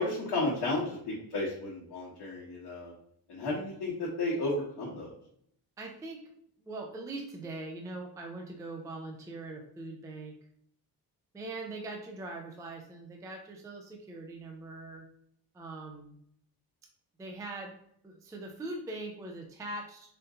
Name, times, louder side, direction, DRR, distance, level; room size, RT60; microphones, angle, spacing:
voice 1, 0.0-2.9 3.3-5.1, left 2 dB, 90° left, -7 dB, 1.3 m, -33 dB
voice 2, 5.8-6.3 6.6-10.3 11.3-15.1 15.5-16.1 17.2-17.7 18.0-20.1, right 2 dB, 10° right, 2 dB, 0.3 m, -41 dB
4.3 x 2.6 x 3.7 m, 0.68 s
wide cardioid pair, 180°, 39 cm